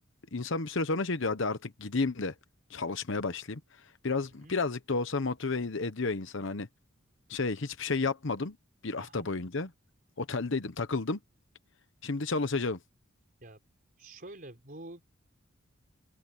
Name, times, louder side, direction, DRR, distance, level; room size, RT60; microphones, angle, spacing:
voice 1, 0.3-2.3 2.7-6.7 7.3-8.6 8.8-9.7 10.2-11.2 12.0-12.8, left 3 dB, 60° left, 1.0 m, -31 dB
voice 2, 9.0-9.3 13.4-13.6 14.0-15.0, right 2 dB, 45° right, 4.2 m, -47 dB
open air
head